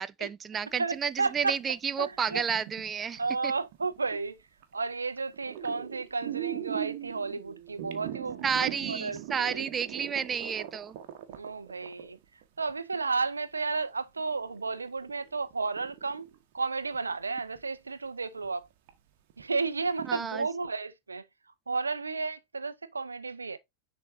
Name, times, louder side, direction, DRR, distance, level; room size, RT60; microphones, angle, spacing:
voice 1, 0.0-3.5 8.4-10.9 20.1-20.4, right 7 dB, 20° right, 0.3 m, -31 dB
voice 2, 0.8-1.6 2.0-2.4 3.2-4.4 4.7-9.6 11.3-12.2 12.6-16.3 16.5-18.7 19.4-21.2 21.7-23.6, right 4 dB, 75° right, 0.7 m, -32 dB
sound 1, 1.2-4.2 4.6-4.9 5.2-13.1 13.7-13.8 14.2-16.6 16.9-17.1 17.5-17.6 18.4-18.5 18.9-19.0 19.3-19.4 19.9-20.2, right 12 dB, 50° right, 1.3 m, -40 dB
10.0 x 3.9 x 2.7 m
figure-of-eight pair, 90°, 0 cm